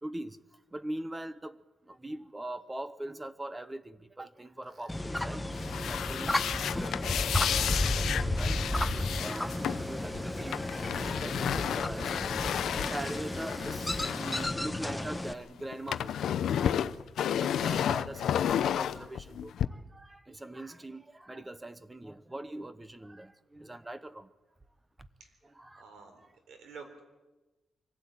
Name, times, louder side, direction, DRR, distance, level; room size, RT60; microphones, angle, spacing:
voice 1, 0.0-0.4 0.7-1.6 1.8-5.5 5.8-6.4 6.6-17.0 17.2-24.3 25.4-26.3, right 1 dB, 15° right, 1.0 m, -42 dB
Tools, 4.6-14.1, right 3 dB, 40° right, 2.3 m, -57 dB
sound 1, 4.9-15.3, left 1 dB, 10° left, 1.0 m, -33 dB
sound 2, 5.5-15.3 15.6-19.7, left 9 dB, 80° left, 0.6 m, -32 dB
voice 2, 25.8-27.0, right 5 dB, 85° right, 4.1 m, -50 dB
24.0 x 16.5 x 9.0 m
cardioid pair, 115°, 0 cm